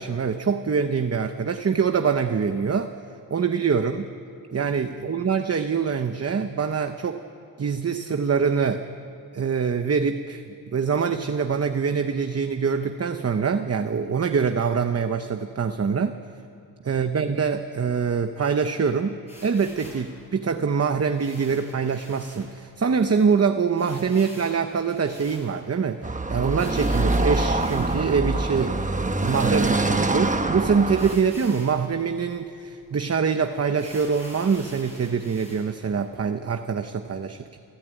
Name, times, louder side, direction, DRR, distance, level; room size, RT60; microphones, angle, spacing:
voice 1, 0.0-2.9 3.3-4.1 4.5-7.2 7.6-8.9 9.3-16.1 16.8-28.8 29.2-37.6, right 6 dB, 40° right, 7 dB, 0.8 m, -24 dB
sound 1, 19.3-20.1 21.1-22.5 22.9-23.0 23.2-23.3 23.8-25.8 26.5-28.2 28.8-28.9 29.1-30.2 30.9-31.8 32.3-32.4 32.8-32.9 33.7-35.7, left 1 dB, 15° left, 7.3 m, -46 dB
Car passing by / Traffic noise roadway noise, 26.0-31.2, right 2 dB, 20° right, 1.0 m, -24 dB
28.5 x 14.5 x 9.0 m, 2.6 s
wide cardioid pair, 130°, 37 cm